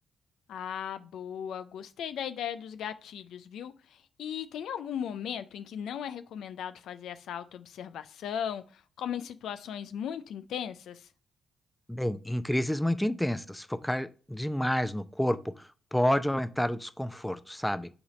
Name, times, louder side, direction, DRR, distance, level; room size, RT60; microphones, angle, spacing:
voice 1, 0.5-11.1, left 9 dB, 70° left, 11 dB, 0.4 m, -37 dB
voice 2, 11.9-17.9, left 1 dB, 5° left, 13 dB, 0.6 m, -29 dB
5.7 x 4.0 x 5.0 m, 0.37 s
hypercardioid pair, 45°, 0 cm